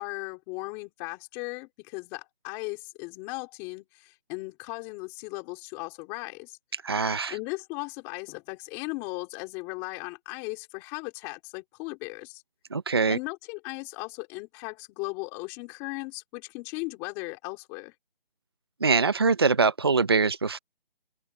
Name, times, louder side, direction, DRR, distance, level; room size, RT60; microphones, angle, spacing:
voice 1, 0.0-6.6 7.3-12.4 13.1-17.9, left 26 dB, 10° left, 4.0 m, -37 dB
voice 2, 6.8-7.3 12.7-13.2 18.8-20.6, right 4 dB, 25° right, 0.9 m, -23 dB
open air
figure-of-eight pair, 170°, 30 cm